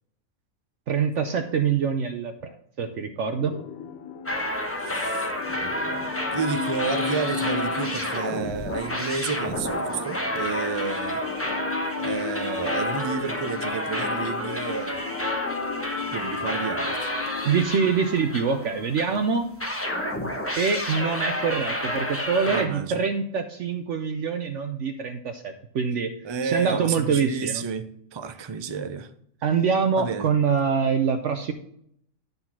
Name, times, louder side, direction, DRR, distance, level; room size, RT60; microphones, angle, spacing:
voice 1, 0.9-3.6 17.4-19.5 20.5-26.2 26.4-27.6 29.4-31.5, right 6 dB, 60° right, 1.0 m, -25 dB
sound 1, 3.4-17.7, left 6 dB, 80° left, 1.1 m, -36 dB
sound 2, 4.3-19.2 19.6-22.7, left 1 dB, 10° left, 1.1 m, -30 dB
voice 2, 4.8-11.3 12.0-15.0 16.1-17.1 22.5-23.0 26.2-29.1 30.0-30.3, right 5 dB, 40° right, 0.4 m, -31 dB
11.5 x 4.1 x 5.8 m
omnidirectional pair, 1.5 m